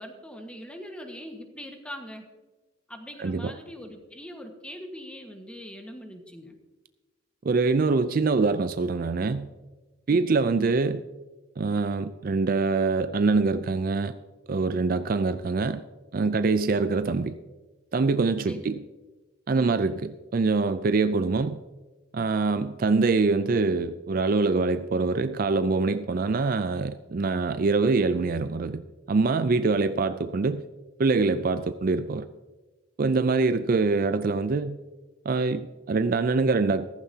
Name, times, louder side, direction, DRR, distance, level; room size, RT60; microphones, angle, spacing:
voice 1, 0.0-2.3 2.9-6.6 10.1-10.3 18.5-18.6 19.5-19.7, equal, 5° left, 3 dB, 1.4 m, -42 dB
voice 2, 3.2-3.5 7.4-9.5 10.1-11.0 11.6-14.1 14.5-15.8 16.1-17.4 17.9-18.8 19.5-21.6 22.1-28.8 29.1-30.6 31.0-32.3 33.0-34.8 35.3-36.9, right 4 dB, 45° right, 11 dB, 0.4 m, -24 dB
14.5 x 14.5 x 2.8 m, 1.2 s
head